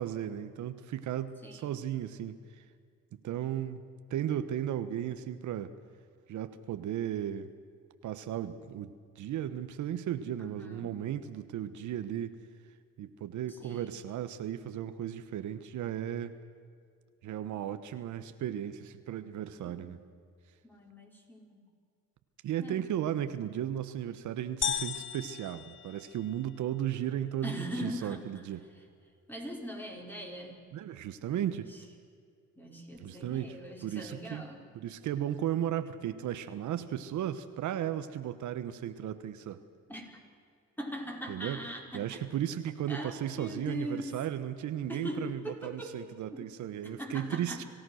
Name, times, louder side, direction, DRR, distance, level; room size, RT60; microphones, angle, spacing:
voice 1, 0.0-2.6 3.2-3.8 4.1-5.7 6.3-7.5 8.0-12.4 13.0-16.3 17.2-20.0 22.4-28.6 30.7-31.7 33.0-33.6 33.8-34.5 34.7-39.6 41.3-41.6 41.9-47.6, right 10 dB, 75° right, 11 dB, 1.1 m, -35 dB
voice 2, 1.4-1.7 10.4-11.0 13.5-13.9 19.6-20.1 20.6-21.6 22.6-22.9 27.4-28.2 28.8-28.9 29.3-30.6 31.4-31.8 32.6-34.6 39.9-40.1 40.8-42.2 42.9-44.1 44.9-45.9 46.3-46.5 46.8-47.7, equal, 5° left, 0 dB, 5.2 m, -41 dB
sound 1, 24.6-26.6, left 8 dB, 40° left, 0.7 m, -36 dB
26.0 x 16.5 x 6.4 m, 2.2 s
cardioid pair, 90°, 30 cm